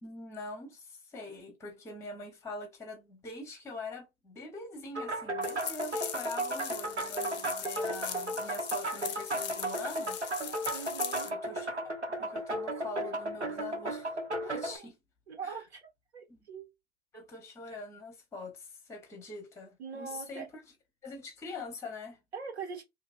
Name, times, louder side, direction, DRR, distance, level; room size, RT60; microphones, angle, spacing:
voice 1, 0.0-10.2 11.2-11.9 12.2-15.0 15.4-15.7 16.3-16.4 17.1-20.6 21.0-22.2, left 3 dB, 10° left, 0.8 m, -44 dB
sound 1, 5.0-14.8, right 1 dB, 90° right, 0.9 m, -35 dB
sound 2, 5.4-11.3, left 10 dB, 40° left, 0.5 m, -40 dB
voice 2, 10.7-11.3 14.4-14.9 15.3-15.9 16.1-16.7 19.8-20.5 22.3-22.8, right 5 dB, 70° right, 1.4 m, -42 dB
2.8 x 2.6 x 2.4 m
figure-of-eight pair, 105°, 34 cm